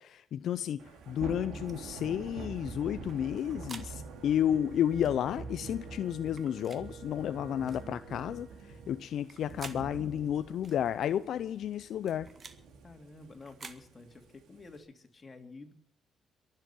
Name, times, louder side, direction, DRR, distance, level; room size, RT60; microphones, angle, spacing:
voice 1, 0.0-8.5 8.9-12.3, left 10 dB, 70° left, 0.5 m, -32 dB
Thunder / Rain, 0.8-14.8, right 4 dB, 85° right, 2.5 m, -46 dB
sound 1, 1.5-1.8 3.1-3.9 5.0-5.2 6.3-6.8 7.7-7.9 9.1-9.8 10.6-10.8 11.8-12.6 13.4-13.8, right 4 dB, 40° right, 1.7 m, -49 dB
Wind instrument woodwind instrument, 3.5-9.1, right 4 dB, 60° right, 4.7 m, -55 dB
voice 2, 12.8-15.7, left 3 dB, 30° left, 2.7 m, -50 dB
22.5 x 7.6 x 7.3 m
cardioid pair, 90°, 0 cm